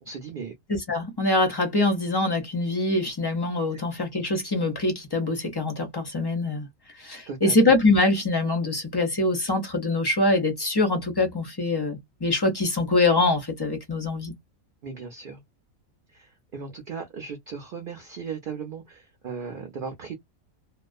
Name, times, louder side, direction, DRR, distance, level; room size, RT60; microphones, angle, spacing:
voice 1, 0.0-0.5 7.3-7.5 14.8-15.4 16.1-20.1, right 6 dB, 55° right, 0.7 m, -37 dB
voice 2, 0.7-6.7 7.0-14.3, left 2 dB, 30° left, 0.4 m, -24 dB
2.3 x 2.1 x 2.4 m
omnidirectional pair, 1.4 m